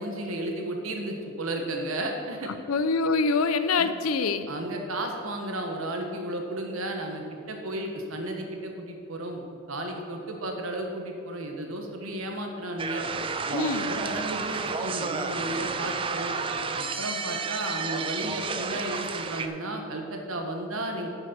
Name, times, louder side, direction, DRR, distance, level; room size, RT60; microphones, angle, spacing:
voice 1, 0.0-2.5 3.8-4.0 4.5-7.2 7.5-13.0 13.5-16.3 16.8-21.1, right 1 dB, 80° right, 3 dB, 1.3 m, -33 dB
voice 2, 2.7-4.5 13.5-13.9, left 4 dB, 90° left, 11 dB, 0.5 m, -25 dB
sound 1, 12.8-19.5, right 4 dB, 25° right, 0.4 m, -31 dB
9.1 x 6.2 x 6.0 m, 2.6 s
head